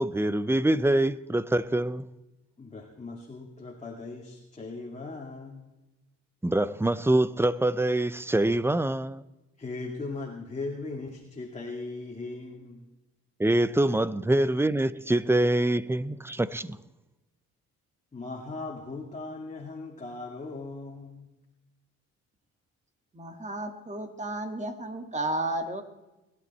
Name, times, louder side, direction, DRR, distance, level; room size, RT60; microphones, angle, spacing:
voice 1, 0.0-2.0 6.4-9.2 13.4-16.8, right 1 dB, 10° right, 0.6 m, -25 dB
voice 2, 2.6-5.6 9.6-12.9 18.1-21.3, left 3 dB, 25° left, 2.3 m, -38 dB
voice 3, 23.1-25.8, right 2 dB, 25° right, 2.0 m, -33 dB
21.0 x 11.0 x 4.3 m
cardioid pair, 90°, 30 cm